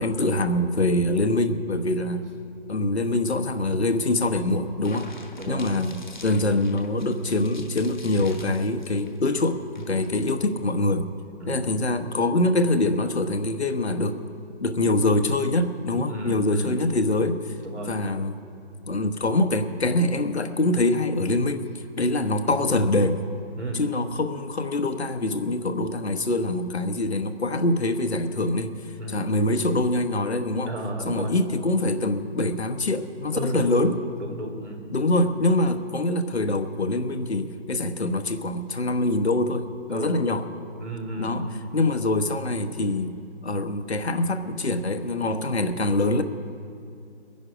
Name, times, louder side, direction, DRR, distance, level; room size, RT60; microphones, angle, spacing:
voice 1, 0.0-2.2 2.7-5.1 5.5-11.1 11.5-14.2 14.6-17.4 17.9-18.4 18.9-23.2 23.7-28.7 29.1-30.7 31.0-33.9 34.9-40.4 41.2-41.5 41.7-43.1 43.4-46.2, left 2 dB, 70° left, 9 dB, 1.2 m, -24 dB
sound 1, 4.8-10.3, left 2 dB, 45° left, 1.3 m, -46 dB
voice 2, 16.1-16.8 17.6-17.9 23.6-23.8 29.0-29.3 30.7-31.3 33.3-33.9 34.2-34.8 39.9-40.2 40.8-41.4, right 1 dB, 90° right, 1 dB, 3.6 m, -32 dB
23.0 x 11.0 x 5.0 m, 2.4 s
figure-of-eight pair, 175°, 34 cm